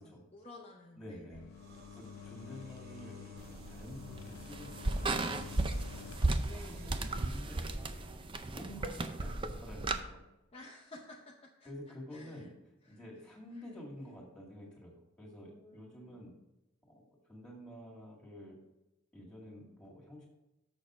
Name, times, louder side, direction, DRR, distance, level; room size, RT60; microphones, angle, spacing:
voice 1, 0.3-1.5 6.4-7.3 10.5-11.7 12.1-12.5 12.8-13.0 13.5-13.8 15.3-16.3, left 1 dB, 25° left, -1 dB, 0.7 m, -53 dB
voice 2, 1.0-1.5 1.9-3.2 3.7-5.6 6.5-6.8 7.1-10.2 11.6-12.5 12.9-16.3 16.9-18.6 19.1-20.3, equal, 5° left, -3 dB, 2.1 m, -50 dB
sound 1, 1.3-6.3, left 7 dB, 80° left, 0.4 m, -50 dB
sound 2, 1.5-8.4, right 2 dB, 45° right, 0.9 m, -55 dB
sound 3, 3.4-10.0, right 2 dB, 25° right, 0.5 m, -35 dB
7.0 x 6.5 x 5.0 m, 0.96 s
head